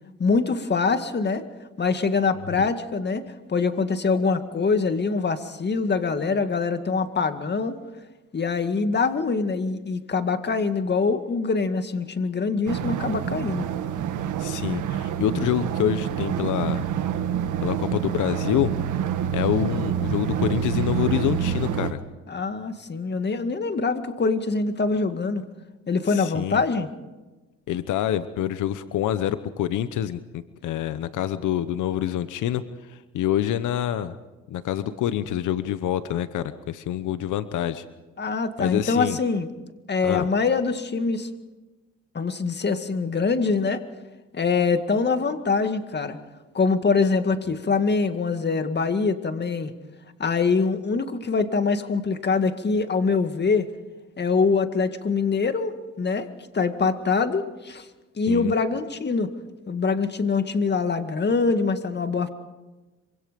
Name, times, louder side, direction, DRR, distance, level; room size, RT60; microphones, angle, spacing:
voice 1, 0.2-1.4 1.8-3.2 3.5-7.8 8.3-13.7 22.3-25.4 25.9-26.9 38.2-39.5 39.9-41.3 42.1-43.8 44.3-46.2 46.5-49.7 50.2-53.7 54.2-56.3 56.5-57.9 58.2-59.3 59.7-62.3, left 4 dB, 35° left, 8 dB, 2.1 m, -24 dB
sound 1, 12.7-21.9, right 9 dB, 80° right, 1.7 m, -27 dB
voice 2, 14.4-16.8 17.6-18.7 19.3-22.0 26.1-26.6 27.7-32.6 32.9-34.2 34.5-37.8 38.6-39.2 40.0-40.3 58.3-58.5, left 11 dB, 80° left, 12 dB, 1.0 m, -26 dB
26.0 x 25.0 x 5.3 m, 1.2 s
cardioid pair, 90°, 30 cm